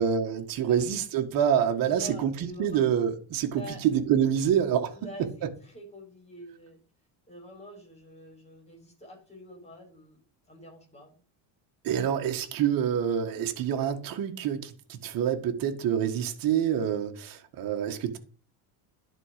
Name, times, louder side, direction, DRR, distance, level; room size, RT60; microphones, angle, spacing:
voice 1, 0.0-2.3 2.6-4.9 11.8-18.2, right 9 dB, 55° right, 1.7 m, -26 dB
voice 2, 1.8-2.8 3.5-3.8 4.9-6.8 7.3-10.2 10.5-11.2, left 1 dB, 15° left, 4.5 m, -46 dB
11.0 x 4.6 x 5.1 m
cardioid pair, 145°, 42 cm